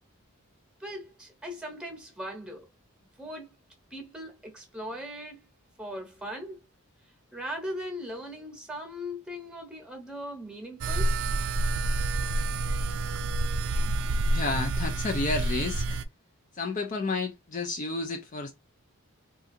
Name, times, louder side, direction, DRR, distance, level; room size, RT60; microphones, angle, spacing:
voice 1, 0.8-2.7 3.2-3.5 3.9-5.4 5.8-6.6 7.3-11.2, equal, 5° right, 1.0 m, -39 dB
sound 1, 10.8-16.1, right 2 dB, 85° right, 0.4 m, -28 dB
voice 2, 14.3-15.9 16.5-18.5, left 3 dB, 35° left, 0.4 m, -31 dB
3.9 x 2.4 x 2.6 m
head